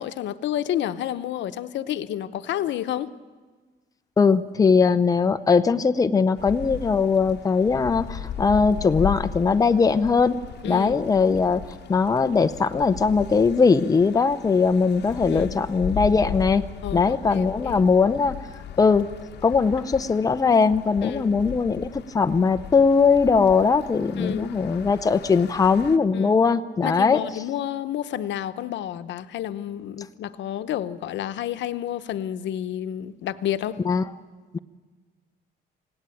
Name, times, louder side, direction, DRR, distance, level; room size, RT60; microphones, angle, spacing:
voice 1, 0.0-3.1 10.6-11.0 15.3-15.6 16.8-17.8 21.0-21.3 24.2-24.5 26.1-26.4 26.8-33.8, left 11 dB, 90° left, 12 dB, 0.9 m, -30 dB
voice 2, 4.2-10.4 10.6-11.6 11.9-16.6 16.9-18.4 18.8-19.1 19.4-27.2 33.8-34.0 34.5-34.6, left 5 dB, 20° left, 9 dB, 0.7 m, -20 dB
sound 1, 6.4-26.0, left 9 dB, 65° left, 1.2 m, -37 dB
27.5 x 17.5 x 9.1 m, 1.4 s
cardioid pair, 160°, 18 cm